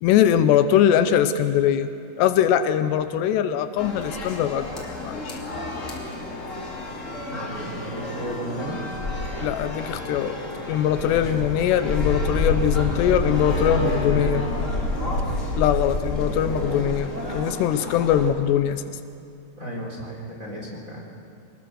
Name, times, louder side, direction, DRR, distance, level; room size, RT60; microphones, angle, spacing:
voice 1, 0.0-1.9 2.2-5.4 9.4-10.4 10.7-14.4 15.6-18.8, left 10 dB, 85° left, 11 dB, 2.9 m, -21 dB
sound 1, 3.8-18.3, left 2 dB, 20° left, 2.7 m, -29 dB
voice 2, 7.3-8.8 11.0-11.4 13.6-14.6 14.9-15.4 19.6-21.0, right 1 dB, 20° right, -2 dB, 3.9 m, -34 dB
26.0 x 20.0 x 6.5 m, 2.5 s
omnidirectional pair, 4.9 m